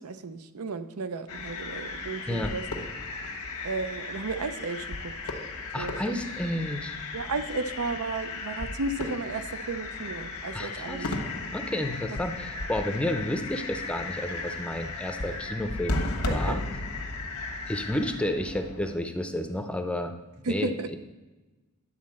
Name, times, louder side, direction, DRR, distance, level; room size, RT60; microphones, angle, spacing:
voice 1, 0.0-2.6 3.6-5.1 5.8-6.0 7.1-11.1 16.3-16.6 20.4-20.9, right 3 dB, 80° right, 11 dB, 0.6 m, -33 dB
sound 1, 1.3-19.0, left 2 dB, 85° left, 1.2 m, -35 dB
voice 2, 5.7-7.0 10.5-11.1 11.5-16.0 16.3-16.6 17.7-20.1 20.5-21.0, left 1 dB, 5° left, 6 dB, 0.6 m, -31 dB
10.5 x 4.2 x 7.4 m, 1.2 s
head